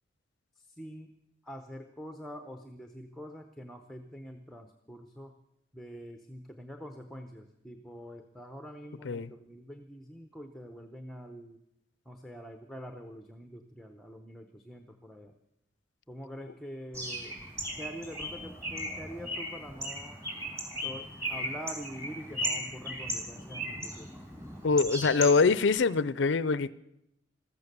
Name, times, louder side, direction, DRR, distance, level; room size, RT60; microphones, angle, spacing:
voice 1, 0.8-1.1 1.4-5.3 5.7-11.6 12.1-15.3 16.1-17.4 17.7-20.2 20.8-24.1, equal, ahead, 6 dB, 0.8 m, -45 dB
Bird, 16.9-25.7, equal, 15° right, 3.6 m, -37 dB
voice 2, 24.6-26.7, left 4 dB, 70° left, 18 dB, 0.5 m, -24 dB
14.0 x 14.0 x 6.7 m, 0.80 s
head